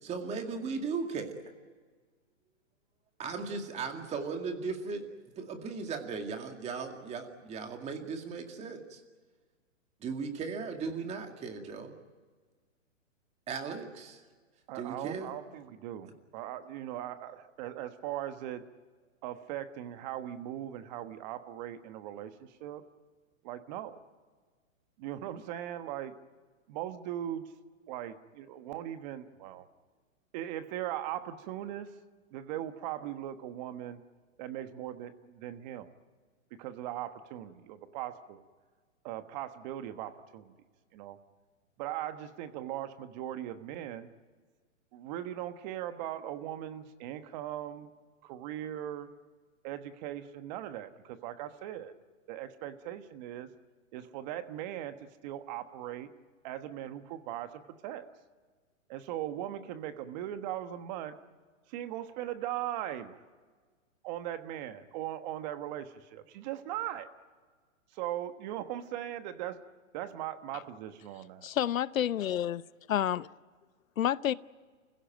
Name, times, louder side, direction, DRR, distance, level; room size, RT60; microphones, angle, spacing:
voice 1, 0.0-1.4 3.2-5.1 5.4-9.0 10.0-11.9 13.5-14.2 14.7-15.3, right 5 dB, 15° right, 2.2 m, -37 dB
voice 2, 14.7-18.6 19.2-22.8 23.4-24.0 25.0-26.1 26.7-27.5 27.9-29.6 30.3-31.9 32.3-34.0 34.4-35.9 36.6-38.4 39.0-40.5 40.9-41.2 41.8-44.1 44.9-47.9 48.2-49.1 49.6-51.9 52.3-53.5 53.9-56.1 56.4-58.0 58.9-61.1 61.7-63.2 64.0-67.1 67.9-69.6 69.9-71.5, right 12 dB, 35° right, 1.3 m, -39 dB
voice 3, 71.4-72.6 72.9-73.2 74.0-74.3, left 11 dB, 85° left, 0.8 m, -29 dB
29.0 x 16.0 x 9.0 m
hypercardioid pair, 150°, 39 cm